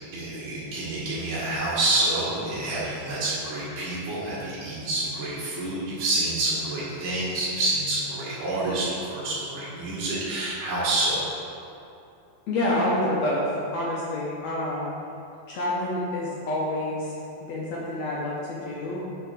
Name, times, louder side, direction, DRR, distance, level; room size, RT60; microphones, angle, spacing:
voice 1, 0.0-11.2, right 2 dB, 45° right, -10 dB, 2.0 m, -28 dB
voice 2, 12.5-14.9 15.5-17.1 17.4-19.0, left 1 dB, 70° left, -5 dB, 1.7 m, -28 dB
8.1 x 5.8 x 5.8 m, 2.8 s
omnidirectional pair, 4.5 m